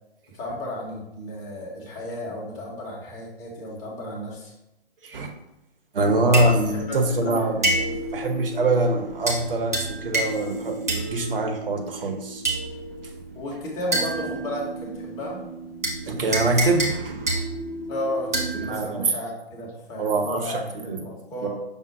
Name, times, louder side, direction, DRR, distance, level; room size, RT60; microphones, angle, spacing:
voice 1, 0.3-4.5 6.2-7.7 13.3-15.4 17.9-21.5, left 1 dB, 10° left, -3 dB, 0.7 m, -33 dB
voice 2, 5.0-5.3 5.9-7.7 8.1-12.4 16.0-17.4 18.5-19.0 20.0-21.0 21.4-21.5, right 2 dB, 60° right, 5 dB, 0.9 m, -24 dB
sound 1, 6.0-18.7, right 2 dB, 15° right, 0.3 m, -30 dB
5.5 x 2.0 x 4.6 m, 0.91 s
figure-of-eight pair, 135°, 32 cm